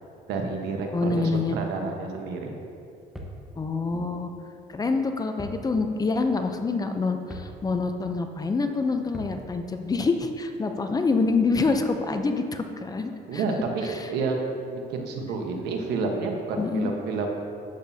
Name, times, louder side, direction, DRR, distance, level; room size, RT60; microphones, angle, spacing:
voice 1, 0.3-2.5 3.9-4.0 13.3-17.3, right 4 dB, 80° right, 2 dB, 1.2 m, -30 dB
voice 2, 0.9-1.6 3.6-4.3 4.7-13.4 13.9-14.1 16.6-16.9, left 3 dB, 20° left, 6 dB, 0.6 m, -26 dB
sound 1, 3.1-3.5 5.4-5.7 6.0-6.1 7.3-7.6 9.1-9.4, equal, ahead, 1.2 m, -39 dB
11.5 x 7.9 x 2.8 m, 2.5 s
cardioid pair, 110°, 17 cm